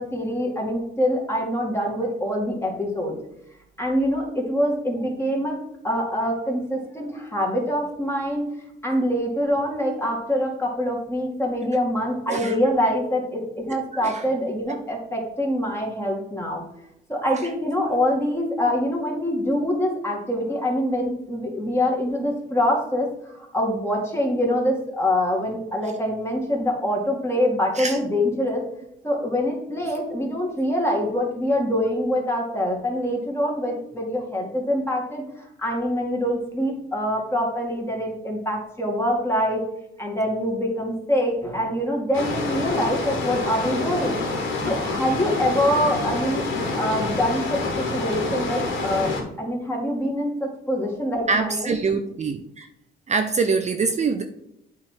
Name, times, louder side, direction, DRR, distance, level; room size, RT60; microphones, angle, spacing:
voice 1, 0.0-3.2 3.8-5.6 5.8-8.4 8.8-16.6 17.1-28.6 29.0-39.6 40.0-44.2 44.7-51.8, equal, 10° left, -1 dB, 2.2 m, -25 dB
voice 2, 13.9-14.2 27.7-28.0 51.3-52.7 53.1-54.2, right 4 dB, 35° right, 7 dB, 0.5 m, -24 dB
sound 1, 42.1-49.2, left 3 dB, 80° left, 1.8 m, -27 dB
8.5 x 3.6 x 4.6 m, 0.81 s
cardioid pair, 90°, 20 cm